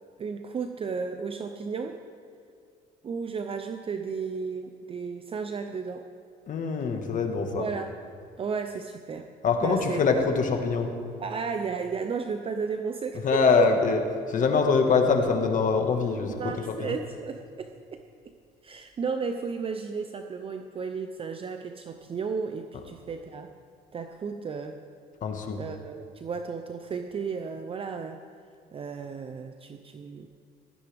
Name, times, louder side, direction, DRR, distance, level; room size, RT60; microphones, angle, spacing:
voice 1, 0.2-2.0 3.0-6.1 7.5-7.9 8.4-9.3 9.6-10.0 11.2-13.7 16.4-18.0 18.6-23.5 23.9-24.8 25.6-28.2 28.7-30.3, right 5 dB, 35° right, 6 dB, 0.6 m, -33 dB
voice 2, 6.5-7.7 9.4-10.9 13.2-14.0 14.3-16.9 25.2-25.6, left 5 dB, 50° left, 4 dB, 1.6 m, -24 dB
16.5 x 13.5 x 3.5 m, 2.4 s
cardioid pair, 110°, 17 cm